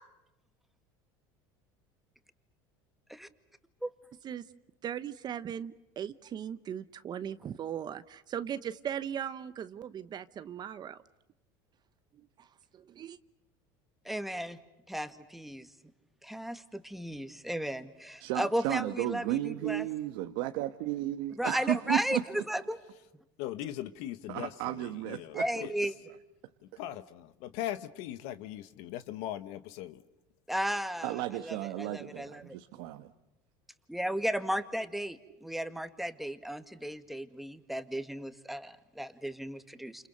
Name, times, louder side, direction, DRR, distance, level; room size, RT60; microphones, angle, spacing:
voice 1, 4.8-11.0 12.4-12.5 12.7-13.2, right 9 dB, 40° right, 1.0 m, -38 dB
voice 2, 14.1-14.6 14.9-15.7 16.2-19.9 21.4-22.8 25.4-25.9 30.5-32.6 33.9-40.1, equal, ahead, 2.0 m, -35 dB
voice 3, 18.2-22.4 24.3-25.4 31.0-33.1, right 14 dB, 75° right, 1.4 m, -34 dB
voice 4, 23.4-25.7 26.6-30.0, left 13 dB, 70° left, 1.4 m, -40 dB
29.5 x 28.5 x 6.7 m
supercardioid pair, 110°, 11 cm